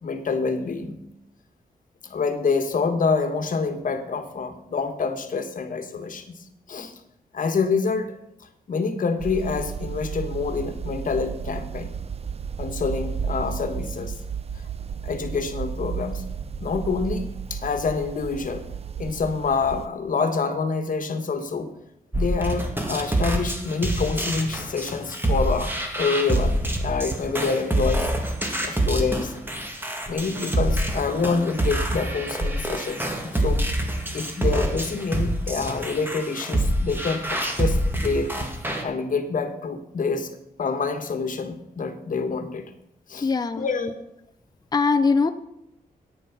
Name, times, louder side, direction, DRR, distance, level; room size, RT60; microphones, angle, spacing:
voice 1, 0.0-1.0 2.0-6.9 7.3-8.1 8.7-11.9 12.6-14.2 15.0-16.2 16.6-18.6 19.0-21.7 22.1-28.3 28.6-29.3 30.1-33.6 34.1-38.3 38.8-40.3 40.6-42.6 43.1-43.9, left 4 dB, 60° left, 8 dB, 1.5 m, -27 dB
sound 1, 9.2-19.9, right 6 dB, 40° right, 0.6 m, -33 dB
sound 2, 22.1-38.8, right 1 dB, 15° right, 1.8 m, -26 dB
voice 2, 43.2-43.6 44.7-45.3, left 4 dB, 25° left, 9 dB, 0.6 m, -21 dB
9.3 x 9.3 x 6.0 m, 0.80 s
wide cardioid pair, 105°, 15 cm